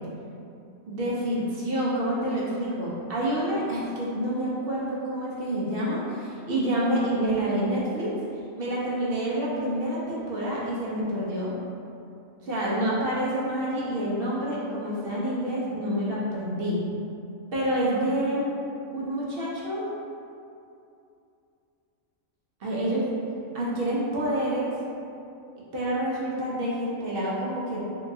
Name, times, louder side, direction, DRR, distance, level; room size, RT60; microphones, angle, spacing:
voice 1, 0.9-8.1 8.6-11.5 12.4-16.8 17.5-18.5 18.9-19.9 22.6-23.0 23.5-24.7 25.7-27.8, right 1 dB, 60° right, -6 dB, 0.6 m, -28 dB
3.6 x 2.8 x 2.5 m, 2.6 s
omnidirectional pair, 1.4 m